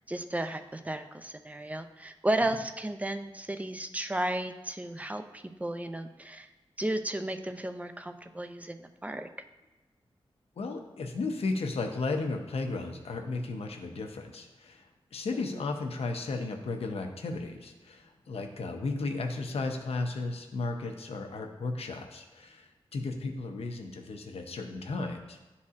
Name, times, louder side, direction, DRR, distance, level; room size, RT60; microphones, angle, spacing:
voice 1, 0.1-6.5 6.8-9.3 15.3-15.6, right 1 dB, 15° right, 8 dB, 0.5 m, -34 dB
voice 2, 10.6-14.9 15.1-25.4, left 3 dB, 90° left, 4 dB, 0.7 m, -34 dB
10.5 x 4.2 x 2.4 m, 1.1 s
wide cardioid pair, 70°, 10 cm